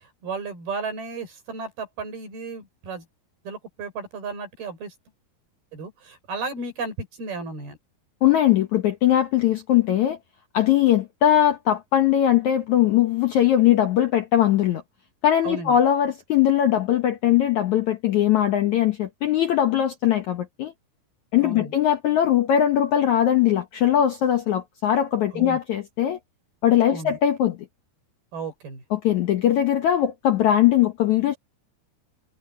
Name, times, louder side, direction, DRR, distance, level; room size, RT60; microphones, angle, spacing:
voice 1, 0.2-3.1 3.4-4.9 5.7-7.8 15.4-15.8 21.4-21.7 25.3-25.6 26.9-27.2 28.3-28.8, right 4 dB, 65° right, 8.2 m, -34 dB
voice 2, 8.2-10.2 10.5-14.8 15.2-20.7 21.3-26.2 26.6-27.6 28.9-31.4, left 11 dB, 65° left, 1.9 m, -20 dB
omnidirectional pair, 4.7 m